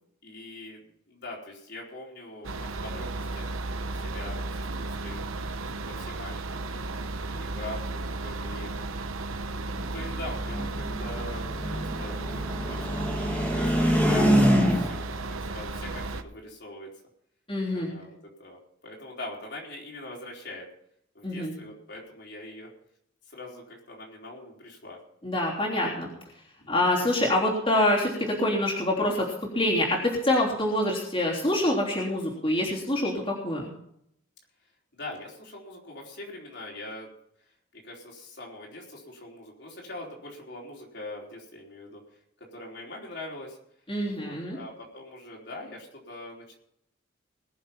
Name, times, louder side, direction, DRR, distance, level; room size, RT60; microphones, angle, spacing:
voice 1, 0.2-5.2 5.6-6.8 7.2-8.9 9.4-12.2 12.7-16.9 17.7-18.6 18.8-20.7 21.1-22.7 23.3-25.0 26.6-26.7 34.9-37.1 37.7-42.0 42.4-43.6 44.0-46.6, left 2 dB, 55° left, -2 dB, 4.3 m, -42 dB
sound 1, 2.4-16.2, right 2 dB, 90° right, 1.0 m, -34 dB
sound 2, 9.7-15.2, equal, 5° left, 1.9 m, -25 dB
voice 2, 17.5-17.9 21.2-21.5 25.2-26.1 26.7-29.3 29.5-33.7 43.9-44.6, left 1 dB, 25° left, -4 dB, 3.4 m, -26 dB
21.0 x 7.2 x 5.7 m, 0.73 s
head